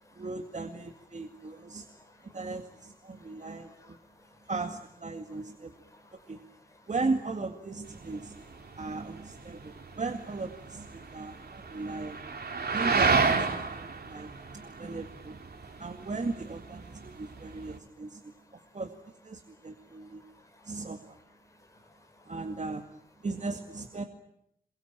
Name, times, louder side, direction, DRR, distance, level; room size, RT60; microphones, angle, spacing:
voice 1, 0.2-1.9 2.2-4.0 4.5-5.7 6.1-6.4 6.9-8.4 8.8-12.2 12.7-15.4 15.8-18.9 19.2-20.2 20.6-21.2 22.3-22.8 23.2-24.0, right 3 dB, 50° right, 5 dB, 2.1 m, -37 dB
voice 2, 1.3-2.4 3.1-4.5 5.3-5.4 5.8-6.9 8.7-8.8 9.5-10.0 11.0-11.8 12.5-12.8 13.9-15.0 15.5-15.8 16.9-17.0 17.4-18.7 19.4-20.9 21.4-22.3, left 2 dB, 20° left, 4 dB, 6.0 m, -61 dB
sound 1, 7.9-17.8, right 4 dB, 85° right, 3.3 m, -32 dB
27.0 x 23.0 x 9.0 m, 0.75 s
wide cardioid pair, 120°, 16 cm